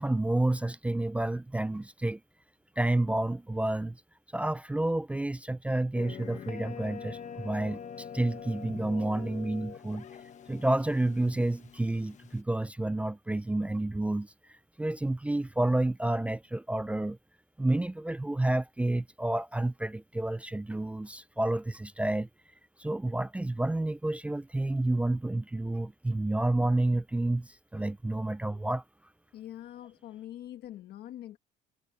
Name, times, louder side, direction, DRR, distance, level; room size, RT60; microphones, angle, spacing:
voice 1, 0.0-2.2 2.8-4.0 4.3-10.1 10.5-14.3 14.8-17.2 17.6-22.3 22.8-28.8, right 2 dB, 10° right, 0.4 m, -30 dB
sound 1, 5.9-12.4, left 7 dB, 45° left, 1.3 m, -44 dB
voice 2, 29.3-31.4, left 12 dB, 70° left, 1.6 m, -44 dB
cardioid pair, 110°, 17 cm